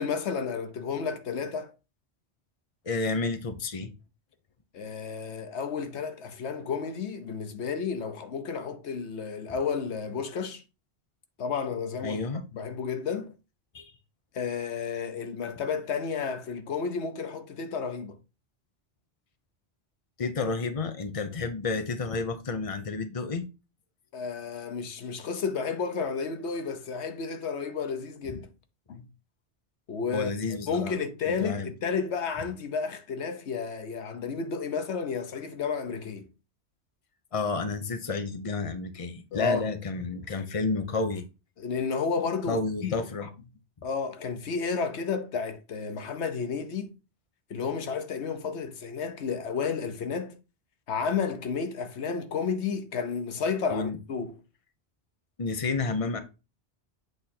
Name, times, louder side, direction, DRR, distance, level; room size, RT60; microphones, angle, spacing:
voice 1, 0.0-1.7 4.7-10.6 11.4-12.2 12.5-13.3 14.3-18.2 24.1-28.5 28.9-29.1 29.9-30.3 30.7-36.3 39.3-39.7 41.6-42.9 43.8-46.9 47.5-50.3 50.9-54.3, left 5 dB, 85° left, 1.1 m, -32 dB
voice 2, 2.8-3.9 12.0-12.4 13.7-13.9 20.2-23.5 30.1-31.0 31.3-31.7 37.3-41.2 42.4-43.3 53.7-54.0 55.4-56.2, left 4 dB, 35° left, 0.9 m, -30 dB
8.1 x 3.7 x 4.2 m
omnidirectional pair, 1.1 m